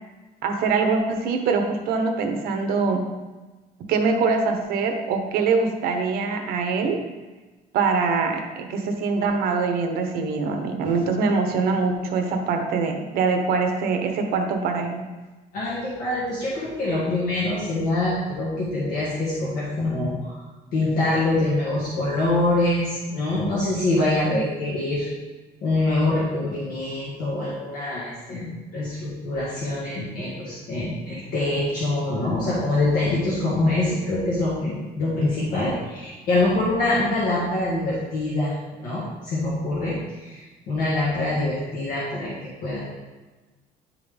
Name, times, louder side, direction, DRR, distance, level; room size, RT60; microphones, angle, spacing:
voice 1, 0.4-3.0 3.9-7.0 7.7-15.1 24.3-24.4, right 4 dB, 70° right, 4 dB, 0.9 m, -23 dB
voice 2, 15.5-20.4 20.7-25.1 25.6-42.8, left 2 dB, 60° left, -8 dB, 1.8 m, -25 dB
10.5 x 3.8 x 3.5 m, 1.2 s
cardioid pair, 170°, 16 cm